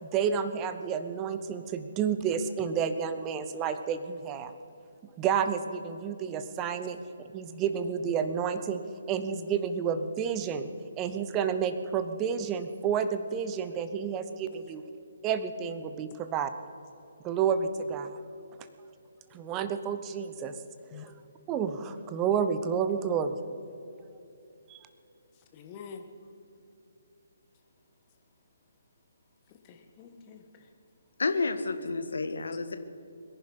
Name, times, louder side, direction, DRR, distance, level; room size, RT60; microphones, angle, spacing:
voice 1, 0.0-4.5 5.2-7.0 7.3-8.8 9.1-10.7 11.0-14.8 15.2-16.5 17.2-18.1 19.3-20.6 20.9-21.1 21.5-23.4 24.7-24.8, right 7 dB, 20° right, 10 dB, 0.9 m, -30 dB
voice 2, 25.3-26.0 29.5-30.7, left 6 dB, 25° left, 5 dB, 1.5 m, -47 dB
voice 3, 31.2-32.8, left 3 dB, 60° left, 10 dB, 1.3 m, -30 dB
22.5 x 11.0 x 5.5 m, 2.8 s
figure-of-eight pair, 135°, 0 cm